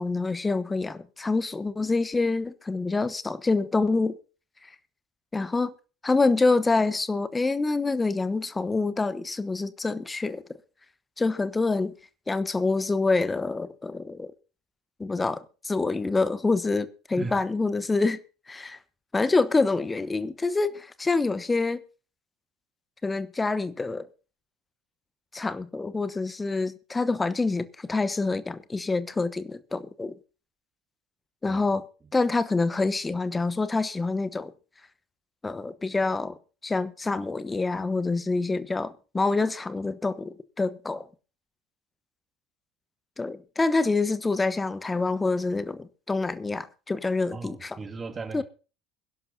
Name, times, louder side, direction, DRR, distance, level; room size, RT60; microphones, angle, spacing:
voice 1, 0.0-4.2 4.6-4.7 5.3-5.7 6.0-10.4 11.2-11.9 12.3-14.3 15.0-18.2 18.5-18.8 19.1-21.8 23.0-24.1 25.3-30.2 31.4-31.8 32.1-34.5 35.4-41.1 43.2-47.8 48.3-48.4, left 3 dB, 15° left, 1.1 m, -26 dB
voice 2, 47.3-48.4, right 4 dB, 25° right, 2.2 m, -36 dB
22.5 x 11.5 x 2.8 m
figure-of-eight pair, 65°, 0 cm